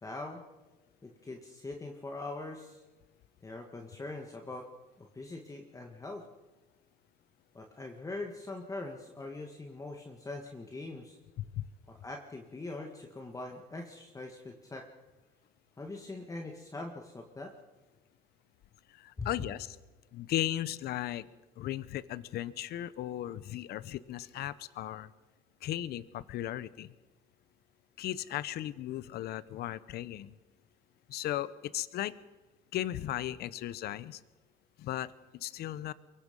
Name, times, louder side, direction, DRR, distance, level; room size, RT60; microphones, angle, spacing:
voice 1, 0.0-0.4 1.0-2.8 3.4-4.7 5.0-6.2 7.5-11.2 12.0-14.9 15.8-17.5 19.2-19.3, left 2 dB, 20° left, 2 dB, 2.1 m, -42 dB
voice 2, 18.9-19.8 20.1-21.3 21.6-25.1 25.6-26.9 28.0-30.3 31.1-32.2 32.7-34.2 34.8-35.9, left 13 dB, 70° left, 17 dB, 0.9 m, -36 dB
23.5 x 23.0 x 5.5 m, 1.2 s
cardioid pair, 110°, 17 cm